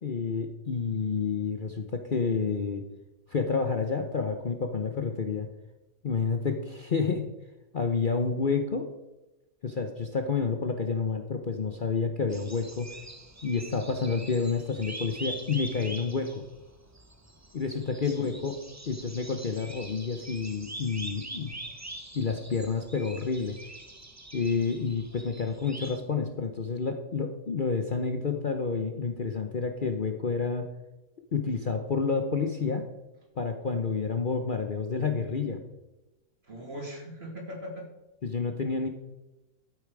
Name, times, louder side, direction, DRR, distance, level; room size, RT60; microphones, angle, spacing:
voice 1, 0.0-2.8 3.3-5.5 6.0-7.3 7.7-8.9 9.6-12.9 13.4-16.4 17.5-18.6 18.9-21.5 22.1-23.6 24.3-30.7 31.3-32.9 33.4-35.6 38.2-38.9, left 5 dB, 40° left, 5 dB, 0.9 m, -29 dB
sound 1, 12.3-26.0, right 1 dB, 15° right, 0.7 m, -44 dB
voice 2, 36.4-37.9, equal, 45° right, 1 dB, 2.9 m, -40 dB
12.5 x 8.6 x 4.8 m, 1.0 s
omnidirectional pair, 1.5 m